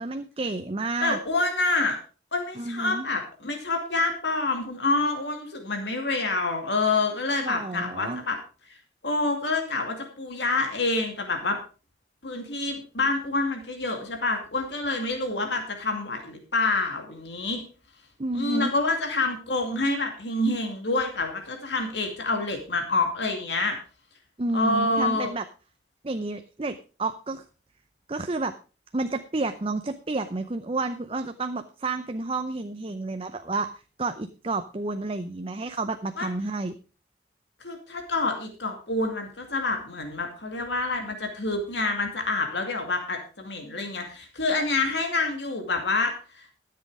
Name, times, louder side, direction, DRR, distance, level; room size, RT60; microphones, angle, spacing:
voice 1, 0.0-1.2 2.6-3.1 7.4-8.2 18.2-18.7 24.4-25.4 26.0-27.4 28.1-28.5 28.9-33.7 34.0-36.7, right 3 dB, 30° right, 8 dB, 0.6 m, -30 dB
voice 2, 1.0-2.0 2.3-8.4 9.0-11.6 12.2-17.6 18.3-23.8 24.5-25.3 36.2-36.3 37.6-46.1, left 3 dB, 70° left, 4 dB, 2.4 m, -27 dB
13.5 x 7.7 x 4.9 m, 0.35 s
head